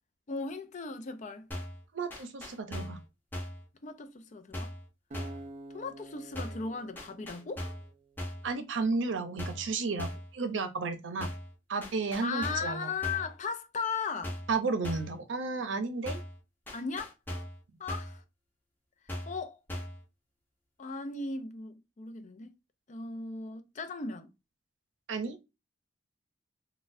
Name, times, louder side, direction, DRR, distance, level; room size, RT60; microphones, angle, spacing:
voice 1, 0.3-1.5 3.8-4.7 5.7-7.6 12.2-14.4 16.7-17.1 17.8-18.2 19.1-19.6 20.8-22.5 22.9-24.3, left 4 dB, 40° left, 0.4 m, -37 dB
sound 1, 1.5-1.8 2.1-3.0 3.3-3.6 4.5-4.9 5.1-5.5 6.4-6.7 7.0-7.9 8.2-8.5 9.4-9.7 10.0-10.3 11.2-11.5 11.8-12.7 13.0-13.3 14.2-14.6 14.8-15.2 16.1-16.4 16.7-17.6 17.9-18.2 19.1-19.4 19.7-20.0, equal, 10° left, 0.8 m, -39 dB
voice 2, 1.9-3.0 8.4-11.3 11.7-12.9 14.5-16.2 25.1-25.4, right 4 dB, 85° right, 0.6 m, -33 dB
Acoustic guitar, 5.1-8.3, right 2 dB, 40° right, 0.4 m, -48 dB
4.0 x 2.2 x 2.5 m
head